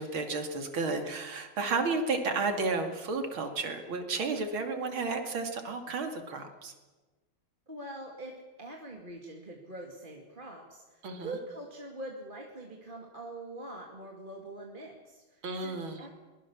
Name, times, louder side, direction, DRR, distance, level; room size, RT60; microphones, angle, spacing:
voice 1, 0.0-6.7 11.0-11.4 15.4-16.1, right 3 dB, 70° right, 6 dB, 3.2 m, -32 dB
voice 2, 7.7-16.1, right 2 dB, 25° right, 0 dB, 2.5 m, -44 dB
23.0 x 21.0 x 7.3 m, 1.2 s
omnidirectional pair, 2.4 m